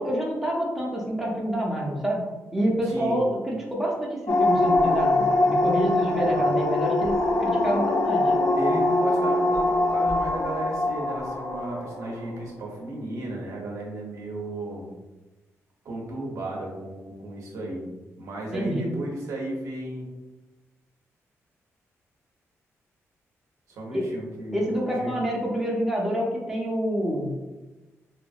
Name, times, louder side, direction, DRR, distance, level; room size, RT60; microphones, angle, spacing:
voice 1, 0.0-2.2 2.5-8.3 18.5-18.9 23.9-24.1 24.5-27.3, equal, 5° right, -3 dB, 0.6 m, -27 dB
voice 2, 2.8-3.2 6.1-6.4 8.5-14.9 15.8-17.8 18.2-20.1 23.7-24.6 24.8-25.1, right 1 dB, 80° right, -2 dB, 0.7 m, -34 dB
sound 1, 4.3-12.4, left 2 dB, 65° left, 0.4 m, -23 dB
2.8 x 2.5 x 2.4 m, 1.1 s
cardioid pair, 120°, 5 cm